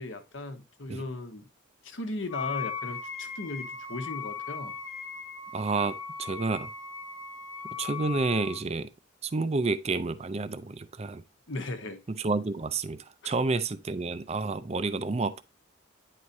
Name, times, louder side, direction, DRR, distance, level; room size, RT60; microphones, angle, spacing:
voice 1, 0.0-1.5 1.8-4.8 11.5-12.0 13.2-13.3, left 2 dB, 60° left, 1.0 m, -37 dB
Wind instrument woodwind instrument, 2.3-8.6, left 6 dB, 85° left, 1.4 m, -38 dB
voice 2, 5.5-6.7 7.6-8.9 9.2-11.2 12.1-15.4, right 3 dB, 30° right, 0.4 m, -30 dB
9.7 x 4.7 x 2.6 m
head